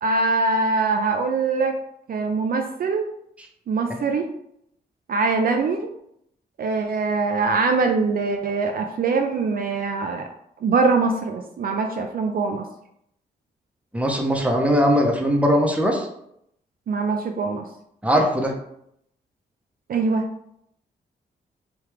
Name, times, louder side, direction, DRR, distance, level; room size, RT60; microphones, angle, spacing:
voice 1, 0.0-1.8 2.1-3.1 3.7-4.3 5.1-5.9 6.6-10.3 10.6-12.7 16.9-17.7 19.9-20.2, right 4 dB, 55° right, 4 dB, 0.4 m, -23 dB
voice 2, 13.9-16.1 18.0-18.5, equal, 5° right, 1 dB, 0.7 m, -20 dB
3.4 x 2.3 x 3.1 m, 0.75 s
cardioid pair, 60°, 18 cm